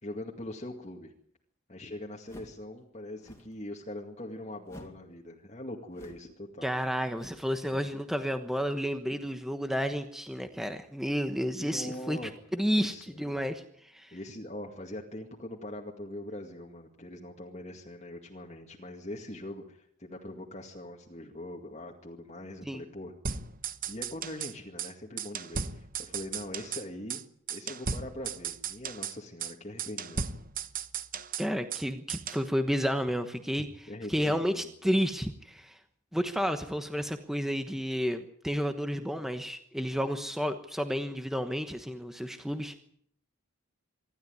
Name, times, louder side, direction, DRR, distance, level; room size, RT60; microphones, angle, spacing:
voice 1, 0.0-1.1 1.7-6.7 7.7-7.9 11.5-12.3 12.8-13.5 14.1-23.1 23.9-27.2 27.5-30.3 33.9-34.7, left 1 dB, 30° left, 0 dB, 2.1 m, -42 dB
sound 1, 2.2-2.7 3.1-3.6 4.6-5.1 5.9-6.4 7.1-7.6, equal, 15° left, 2.7 m, -50 dB
voice 2, 6.6-12.2 12.5-14.1 22.6-22.8 31.4-33.7 34.1-35.8 36.1-42.8, equal, ahead, 7 dB, 1.1 m, -31 dB
sound 2, 23.3-24.5 24.8-24.9 25.2-26.9 27.1-27.2 27.5-29.2 29.4-29.5 29.8-31.8 32.1-32.4, right 6 dB, 40° right, 1.0 m, -36 dB
25.0 x 13.0 x 9.6 m, 0.66 s
head